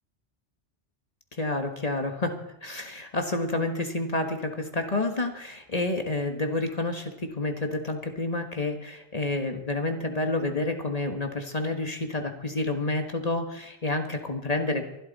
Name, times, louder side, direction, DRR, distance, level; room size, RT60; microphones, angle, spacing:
voice 1, 1.4-14.8, left 2 dB, 35° left, 4 dB, 1.5 m, -29 dB
23.5 x 12.5 x 4.1 m, 0.88 s
omnidirectional pair, 1.2 m